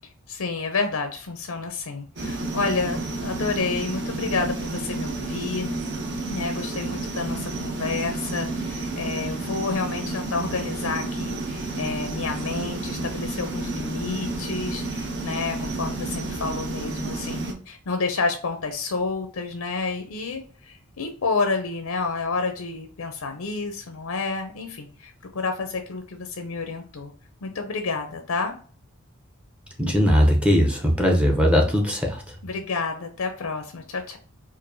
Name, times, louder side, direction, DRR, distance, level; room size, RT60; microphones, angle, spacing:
voice 1, 0.3-5.7 6.3-27.1 27.4-28.5 32.4-34.2, left 4 dB, 75° left, 5 dB, 0.5 m, -29 dB
sound 1, 2.2-17.5, right 2 dB, 50° right, 0.7 m, -31 dB
voice 2, 29.8-32.2, equal, 5° right, 0 dB, 0.6 m, -19 dB
4.5 x 2.5 x 2.6 m, 0.41 s
head